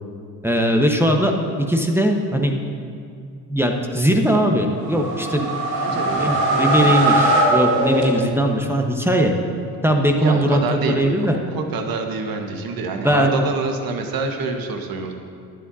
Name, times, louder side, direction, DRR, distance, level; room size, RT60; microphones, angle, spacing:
voice 1, 0.4-1.3 1.6-2.5 3.5-5.5 5.9-9.3 9.8-11.3 13.0-13.4, equal, 5° right, 1 dB, 1.2 m, -20 dB
sound 1, 4.8-8.6, right 1 dB, 90° right, 1.3 m, -20 dB
voice 2, 5.7-6.9 10.2-15.1, right 4 dB, 45° right, 4 dB, 1.6 m, -27 dB
18.0 x 11.0 x 2.8 m, 2.3 s
figure-of-eight pair, 50°, 48 cm